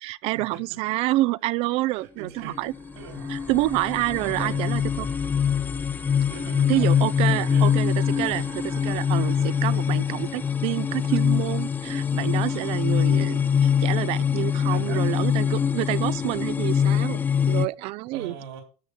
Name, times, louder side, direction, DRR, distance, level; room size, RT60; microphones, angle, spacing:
voice 1, 0.0-2.7 3.3-5.1 6.7-18.4, right 19 dB, 45° right, 0.4 m, -28 dB
voice 2, 1.9-2.6 3.0-3.3 4.1-4.7 6.3-7.0 7.3-7.8 14.7-15.0 15.5-15.7 18.1-18.6, right 6 dB, 70° right, 3.7 m, -41 dB
sound 1, 2.4-17.7, left 7 dB, 15° left, 0.5 m, -24 dB
sound 2, 2.5-15.9, right 8 dB, 85° right, 4.2 m, -50 dB
13.0 x 6.1 x 6.7 m
supercardioid pair, 145°, 14 cm